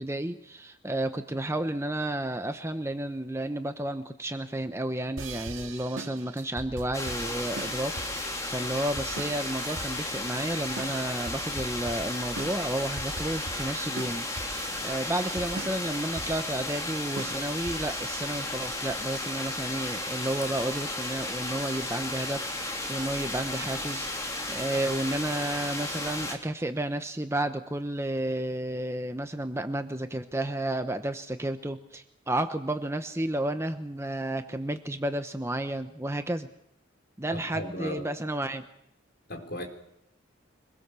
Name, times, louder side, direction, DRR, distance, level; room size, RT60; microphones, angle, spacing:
voice 1, 0.0-14.5 14.8-36.5 37.2-38.7, right 1 dB, 15° right, 0.9 m, -32 dB
sound 1, 5.2-18.1, right 2 dB, 80° right, 1.8 m, -41 dB
sound 2, 6.9-26.4, left 1 dB, 15° left, 3.1 m, -34 dB
voice 2, 37.3-38.1 39.3-39.6, equal, 50° left, 4.4 m, -36 dB
25.5 x 21.5 x 6.9 m
head